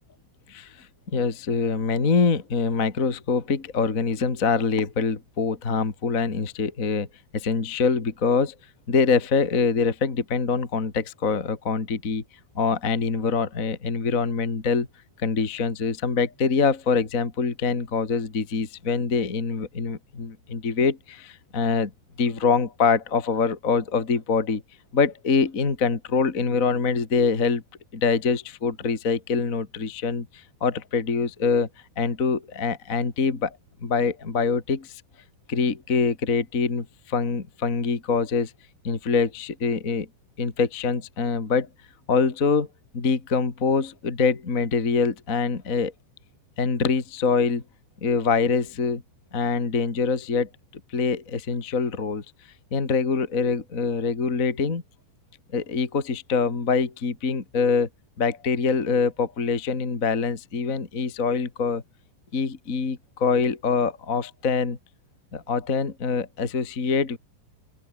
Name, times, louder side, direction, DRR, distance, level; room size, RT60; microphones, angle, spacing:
voice 1, 0.5-0.9 1.1-7.1 7.3-8.5 8.9-12.2 12.5-14.9 15.2-21.9 22.2-24.6 24.9-27.6 27.9-31.7 32.0-33.6 33.8-35.0 35.5-38.5 38.8-40.1 40.4-41.7 42.1-42.7 42.9-45.9 46.6-47.6 48.0-49.0 49.3-50.5 50.9-52.2 52.7-54.8 55.5-57.9 58.2-61.8 62.3-64.8 65.3-67.2, left 5 dB, 25° left, 1.8 m, -24 dB
open air
omnidirectional pair, 5.6 m